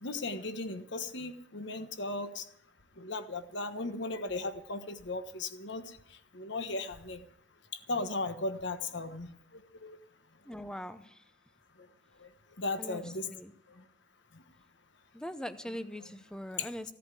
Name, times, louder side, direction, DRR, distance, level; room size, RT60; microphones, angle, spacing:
voice 1, 0.0-2.4 3.0-6.0 6.3-7.3 7.7-10.0 12.2-12.3 12.6-13.3 13.8-13.9 14.3-14.4 16.6-16.9, left 2 dB, 60° left, 9 dB, 1.3 m, -37 dB
voice 2, 10.5-11.2 12.8-13.0 13.3-13.5 15.1-16.9, equal, 5° left, 11 dB, 0.6 m, -41 dB
16.0 x 8.4 x 8.3 m, 0.72 s
head